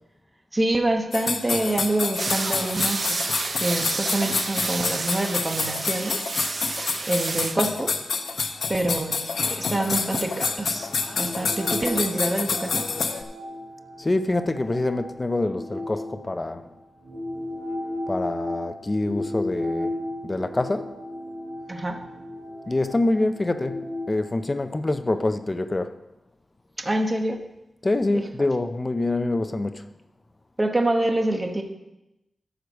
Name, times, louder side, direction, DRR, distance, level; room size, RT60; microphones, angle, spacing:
voice 1, 0.5-6.2 7.1-7.9 8.7-10.9 11.2-12.8 21.7-22.0 26.8-27.4 28.1-28.2 30.6-31.6, right 1 dB, 20° right, 1.0 m, -26 dB
sound 1, 1.1-13.2, left 4 dB, 65° left, 0.7 m, -28 dB
sound 2, 2.1-7.6, right 3 dB, 35° right, 0.5 m, -30 dB
sound 3, 10.7-16.5 17.0-25.1, left 1 dB, 75° right, 2.7 m, -35 dB
voice 2, 14.0-16.7 18.1-20.0 20.2-20.9 22.7-26.0 27.8-29.9, left 2 dB, 20° left, 0.5 m, -25 dB
13.0 x 4.8 x 6.2 m
wide cardioid pair, 165°, 0 cm